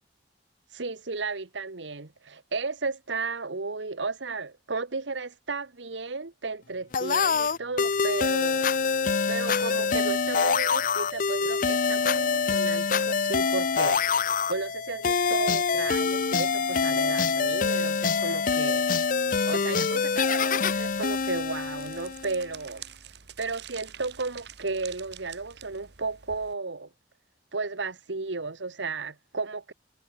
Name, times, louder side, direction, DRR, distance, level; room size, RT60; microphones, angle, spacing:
voice 1, 0.7-9.0 9.3-14.0 14.5-18.9 19.4-22.8 23.4-26.9 27.5-29.7, right 3 dB, 85° right, 1.4 m, -34 dB
sound 1, 6.9-22.4, left 5 dB, 45° left, 0.6 m, -25 dB
sound 2, 20.6-26.5, right 9 dB, 65° right, 1.5 m, -47 dB
head